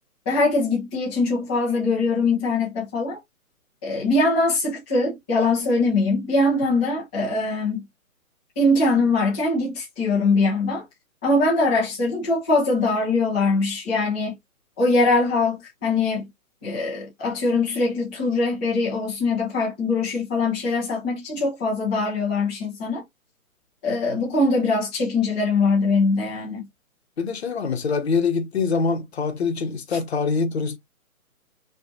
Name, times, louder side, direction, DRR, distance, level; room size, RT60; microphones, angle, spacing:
voice 1, 0.3-3.2 3.8-7.8 8.6-10.8 11.2-14.3 14.8-16.3 16.6-23.0 23.8-26.7, left 3 dB, 5° left, 0.6 m, -22 dB
voice 2, 27.2-30.8, left 5 dB, 45° left, 1.0 m, -24 dB
5.8 x 2.5 x 2.7 m
hypercardioid pair, 150°, 43 cm